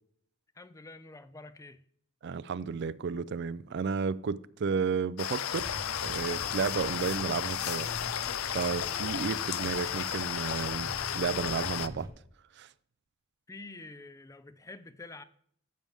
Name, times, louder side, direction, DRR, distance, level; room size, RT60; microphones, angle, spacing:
voice 1, 0.5-1.8 13.5-15.2, left 3 dB, 15° left, 0.4 m, -47 dB
voice 2, 2.2-5.7 6.0-7.9 8.5-12.1 12.6-12.7, right 5 dB, 55° right, 0.4 m, -32 dB
sound 1, 5.2-11.9, left 10 dB, 90° left, 0.5 m, -33 dB
sound 2, 5.5-12.1, equal, 15° right, 1.0 m, -44 dB
12.5 x 7.6 x 3.5 m
head